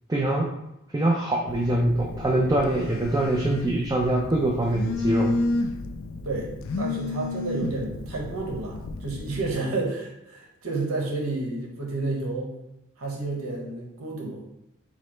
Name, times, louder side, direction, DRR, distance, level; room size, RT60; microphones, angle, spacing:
voice 1, 0.1-0.5 0.9-5.3, right 1 dB, 15° right, 0 dB, 0.4 m, -24 dB
Telephone, 1.5-9.5, left 2 dB, 65° left, 0.4 m, -31 dB
voice 2, 6.8-12.6 13.0-14.4, right 3 dB, 85° right, -1 dB, 1.1 m, -30 dB
5.0 x 2.0 x 4.3 m, 0.90 s
head